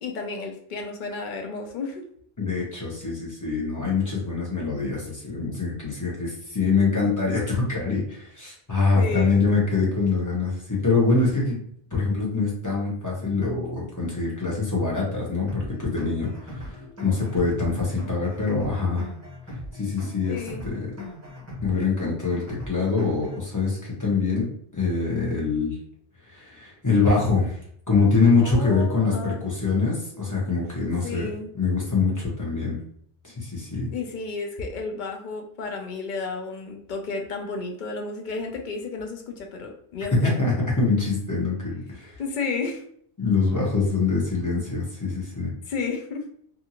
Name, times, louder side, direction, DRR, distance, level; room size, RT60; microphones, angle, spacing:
voice 1, 0.0-2.0 8.9-9.5 20.3-20.7 28.4-29.4 31.0-31.5 33.9-40.5 42.2-42.8 45.7-46.2, left 4 dB, 60° left, 3 dB, 0.6 m, -32 dB
voice 2, 2.4-11.6 11.9-19.1 19.5-20.9 21.6-25.8 26.3-27.6 27.9-31.3 31.5-32.8 33.2-33.9 40.2-42.2 43.2-45.5, left 4 dB, 20° left, -5 dB, 0.7 m, -24 dB
sound 1, 15.5-23.5, left 1 dB, 15° right, 0.8 m, -39 dB
2.6 x 2.5 x 2.7 m, 0.64 s
omnidirectional pair, 1.1 m